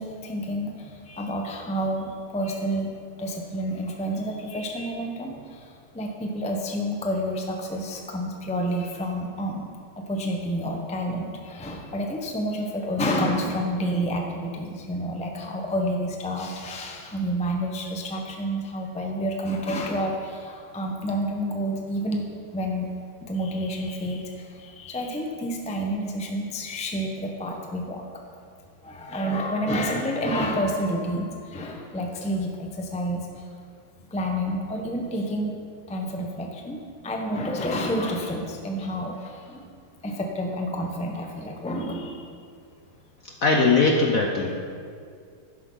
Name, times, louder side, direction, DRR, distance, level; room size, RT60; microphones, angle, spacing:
voice 1, 0.0-2.9 3.2-9.7 10.0-22.2 22.5-22.9 23.2-28.0 28.8-33.5 34.1-35.5 35.9-36.8 37.0-39.7 40.0-42.3, equal, 10° left, 1 dB, 0.4 m, -29 dB
voice 2, 43.2-44.6, left 3 dB, 60° left, 1 dB, 0.9 m, -20 dB
11.5 x 11.0 x 4.0 m, 2.2 s
omnidirectional pair, 2.4 m